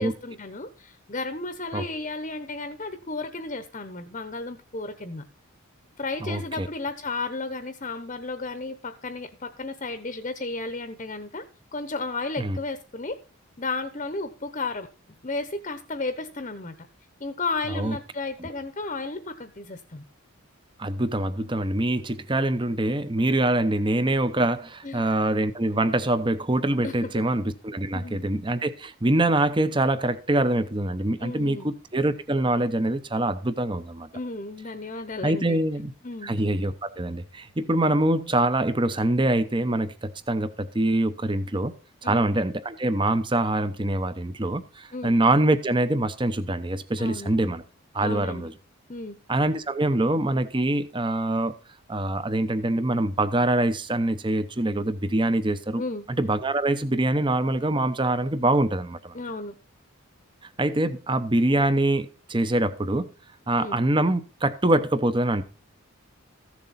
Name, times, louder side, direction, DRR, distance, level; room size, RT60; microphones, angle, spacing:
voice 1, 0.0-5.2 6.0-11.4 11.7-13.2 13.6-14.9 15.2-16.7 17.2-20.0 24.8-25.1 26.8-27.2 27.9-28.3 31.2-31.7 34.1-35.6 36.0-36.3 42.0-42.3 44.9-45.2 47.0-47.3 48.0-48.5 48.9-49.2 55.8-56.1 59.1-59.5 63.6-63.8, left 3 dB, 35° left, 0.9 m, -33 dB
voice 2, 6.2-6.7 12.4-12.6 17.7-18.0 18.4-18.5 20.8-34.1 35.2-35.9 36.2-41.7 42.0-47.6 47.9-48.5 49.3-51.5 51.9-55.8 56.2-59.1 60.6-63.1 63.5-65.4, right 1 dB, 20° right, 0.7 m, -24 dB
14.5 x 7.2 x 4.2 m
head